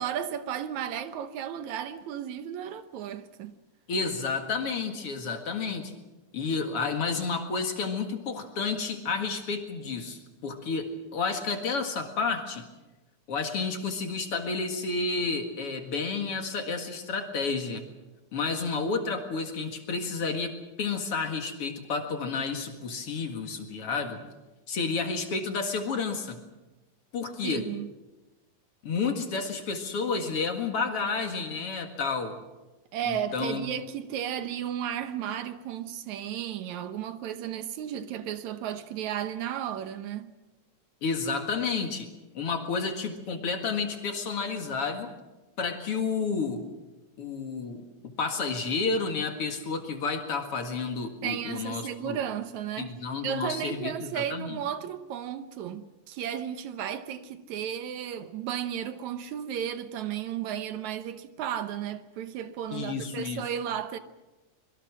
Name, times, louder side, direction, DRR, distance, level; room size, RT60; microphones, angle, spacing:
voice 1, 0.0-3.5 27.4-27.9 32.9-40.3 51.2-52.9 53.2-64.0, right 9 dB, 75° right, 2.2 m, -34 dB
voice 2, 3.9-5.9 6.3-12.6 13.3-17.8 18.3-20.5 20.8-24.2 24.7-26.4 27.1-27.6 28.8-32.4 33.0-33.7 41.0-42.1 42.3-45.1 45.6-46.6 47.2-47.8 48.2-52.2 52.8-54.6 62.7-63.4, left 4 dB, 50° left, 2.6 m, -31 dB
25.5 x 22.5 x 6.2 m
omnidirectional pair, 3.5 m